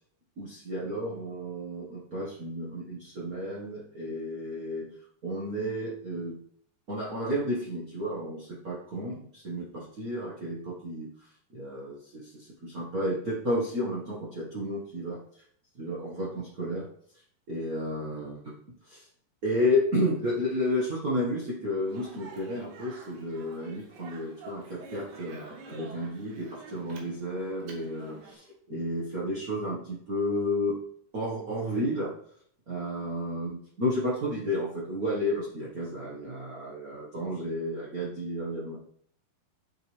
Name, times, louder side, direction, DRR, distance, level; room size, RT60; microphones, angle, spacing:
voice 1, 0.4-4.9 5.2-6.4 6.9-15.2 15.7-16.9 17.5-18.4 18.8-19.1 19.4-30.7 31.1-32.1 32.7-38.8, left 1 dB, 60° right, -5 dB, 0.9 m, -32 dB
Speech, 21.9-28.4, right 3 dB, 75° right, 3.2 m, -48 dB
10.0 x 7.3 x 3.3 m, 0.64 s
omnidirectional pair, 4.0 m